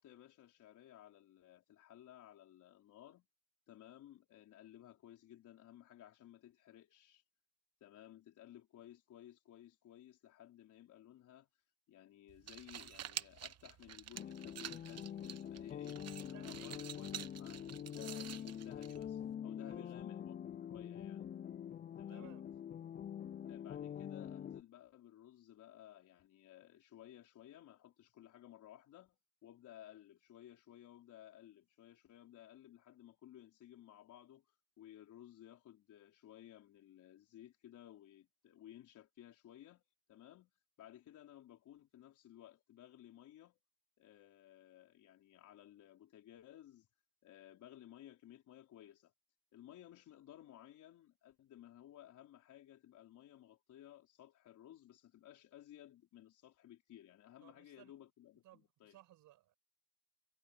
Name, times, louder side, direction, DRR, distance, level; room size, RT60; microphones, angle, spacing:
voice 1, 0.0-3.3 3.7-7.2 7.8-16.0 16.3-21.3 22.0-22.3 23.5-39.8 40.1-40.5 40.8-43.6 44.0-46.9 47.2-49.1 49.5-59.0, left 12 dB, 75° left, 4.3 m, -58 dB
sound 1, 12.3-19.3, right 10 dB, 55° right, 1.2 m, -49 dB
sound 2, 14.1-24.6, left 9 dB, 30° left, 0.4 m, -45 dB
voice 2, 16.2-16.7 19.6-19.9 22.1-22.5 57.4-57.9 58.4-59.6, right 14 dB, 90° right, 5.6 m, -61 dB
cardioid pair, 90°, 30 cm